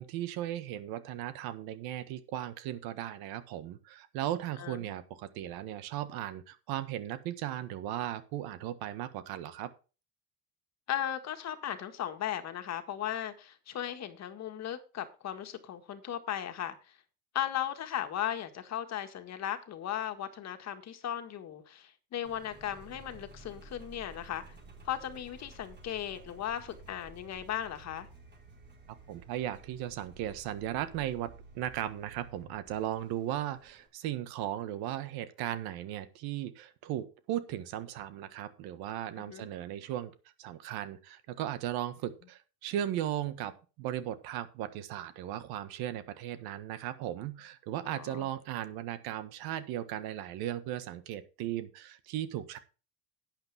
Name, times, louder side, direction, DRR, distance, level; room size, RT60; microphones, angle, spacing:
voice 1, 0.0-9.7 29.1-40.1 40.4-52.6, right 12 dB, 70° right, 12 dB, 1.6 m, -37 dB
voice 2, 4.6-4.9 10.9-16.8 17.3-24.4 24.8-28.1 39.3-39.5 47.8-48.3, left 10 dB, 45° left, 8 dB, 1.8 m, -37 dB
Engine, 22.2-33.9, right 3 dB, 30° right, 4.7 m, -53 dB
11.5 x 9.0 x 3.5 m, 0.33 s
cardioid pair, 125°, 38 cm